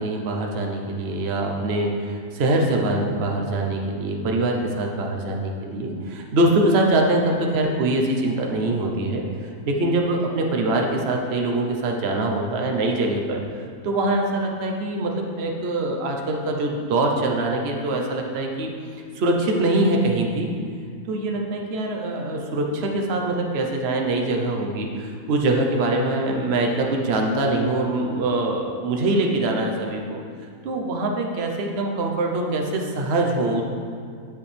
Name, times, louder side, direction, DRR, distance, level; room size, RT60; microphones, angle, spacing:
voice 1, 0.0-13.4 13.8-18.7 19.1-20.5 21.1-30.2 30.6-33.6, right 2 dB, 50° right, 1 dB, 1.0 m, -23 dB
10.5 x 7.1 x 3.4 m, 2.2 s
omnidirectional pair, 1.6 m